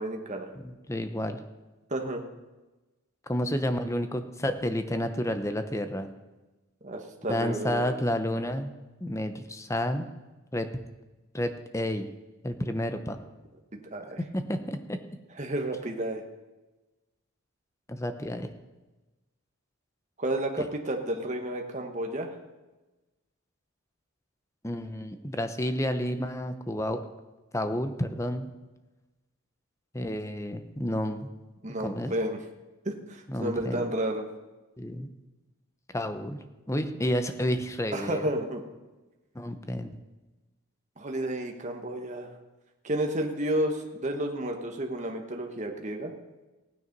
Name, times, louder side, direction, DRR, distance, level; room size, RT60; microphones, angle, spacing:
voice 1, 0.0-0.5 1.9-2.2 6.8-7.9 13.7-14.2 15.4-16.2 20.2-22.3 31.6-32.4 32.8-34.3 37.9-38.6 41.0-42.3 42.8-46.1, right 1 dB, 35° right, 3 dB, 1.3 m, -31 dB
voice 2, 0.6-1.4 3.3-6.1 7.3-8.7 9.0-10.1 10.5-10.7 11.3-12.1 12.4-13.2 14.2-15.0 17.9-18.5 20.6-20.7 24.6-27.0 27.5-28.5 29.9-31.3 31.8-32.1 33.3-33.9 34.8-35.1 35.9-36.4 36.7-38.2 39.3-39.9, left 1 dB, 15° left, 8 dB, 0.8 m, -30 dB
15.5 x 9.6 x 5.3 m, 1.1 s
head